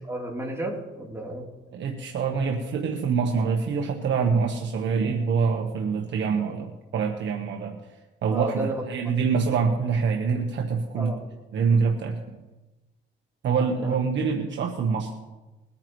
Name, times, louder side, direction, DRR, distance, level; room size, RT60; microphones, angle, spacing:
voice 1, 0.0-1.5 8.3-8.7 10.9-11.2 13.8-13.9, right 1 dB, 15° right, -2 dB, 3.6 m, -32 dB
voice 2, 1.7-7.8 8.2-11.1 11.5-12.4 13.4-15.1, right 5 dB, 65° right, 2 dB, 1.4 m, -25 dB
22.0 x 9.6 x 3.2 m, 1.1 s
cardioid pair, 90°, 20 cm